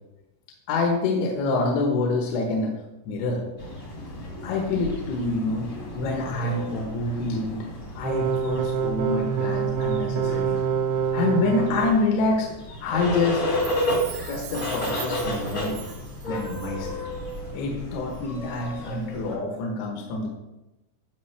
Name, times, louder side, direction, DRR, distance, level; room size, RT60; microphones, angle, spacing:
voice 1, 0.7-2.7 3.1-3.5 4.4-7.7 8.0-10.6 11.1-12.5 12.8-13.4 14.3-15.8 16.3-17.0 17.5-20.3, left 3 dB, 75° left, 0 dB, 3.3 m, -26 dB
sound 1, 3.6-19.4, equal, 45° left, 1.4 m, -33 dB
sound 2, 8.0-11.9, right 7 dB, 70° right, 2.8 m, -26 dB
Chime, 13.4-17.0 17.3-17.4, right 12 dB, 90° right, 2.3 m, -42 dB
14.0 x 5.2 x 3.3 m, 1.0 s
omnidirectional pair, 5.3 m